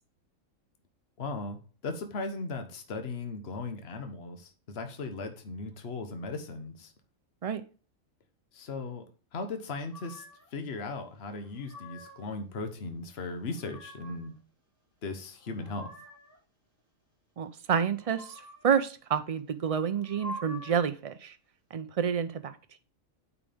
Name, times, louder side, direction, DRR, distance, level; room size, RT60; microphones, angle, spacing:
voice 1, 1.2-1.6 1.8-6.9 8.5-9.0 9.3-10.2 10.5-14.3 15.0-15.9, left 3 dB, 50° left, 7 dB, 1.3 m, -37 dB
sound 1, 9.9-10.5 11.3-12.3 13.3-14.3 15.2-16.4 17.9-18.8 19.9-20.9, left 1 dB, 25° right, 4.4 m, -46 dB
voice 2, 17.4-21.3 21.7-22.6, right 7 dB, 65° right, 11 dB, 0.3 m, -29 dB
8.8 x 4.8 x 3.5 m, 0.38 s
omnidirectional pair, 1.4 m